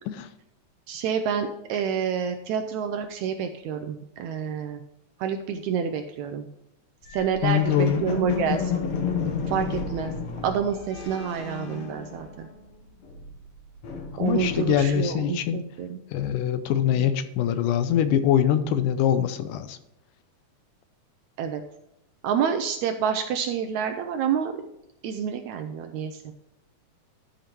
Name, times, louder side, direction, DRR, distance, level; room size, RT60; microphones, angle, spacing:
voice 1, 0.9-4.8 5.2-6.5 7.1-8.7 9.5-10.1 10.4-12.5 14.2-16.0 17.0-17.1 21.4-21.6 22.2-24.5 25.0-26.3, right 7 dB, 80° right, 6 dB, 1.7 m, -28 dB
sound 1, 7.1-12.7 12.9-15.2, left 5 dB, 60° left, 2.0 m, -32 dB
voice 2, 7.4-8.1 14.1-15.6 16.1-19.8, left 9 dB, 85° left, 11 dB, 2.2 m, -23 dB
11.5 x 5.1 x 4.4 m, 0.85 s
omnidirectional pair, 3.8 m